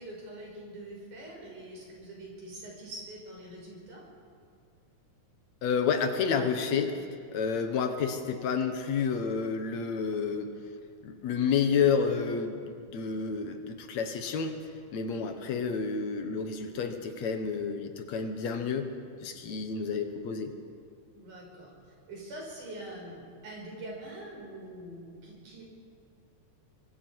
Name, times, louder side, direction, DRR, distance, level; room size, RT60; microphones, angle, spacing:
voice 1, 0.0-4.0 21.1-21.7 22.1-25.6, right 1 dB, 90° right, -2 dB, 6.8 m, -44 dB
voice 2, 5.6-7.0 7.3-10.5 11.0-14.6 14.9-18.9 19.2-20.5, left 6 dB, 65° left, 6 dB, 2.5 m, -30 dB
23.5 x 23.0 x 4.7 m, 2.2 s
omnidirectional pair, 3.5 m